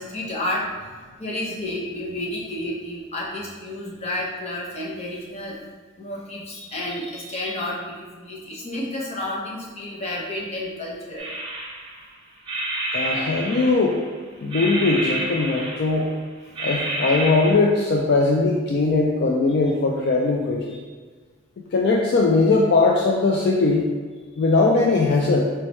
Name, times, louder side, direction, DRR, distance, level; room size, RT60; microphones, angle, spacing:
voice 1, 0.0-5.6 6.0-11.3 20.7-20.9, left 1 dB, 30° left, -4 dB, 0.9 m, -31 dB
sound 1, 11.2-12.0 12.5-14.1 14.5-16.1 16.5-17.5, right 1 dB, 25° right, 0.8 m, -29 dB
voice 2, 12.9-14.0 14.4-16.1 16.6-20.8 21.7-23.9 24.4-25.5, left 3 dB, 55° left, -1 dB, 0.4 m, -20 dB
4.3 x 3.1 x 3.1 m, 1.5 s
head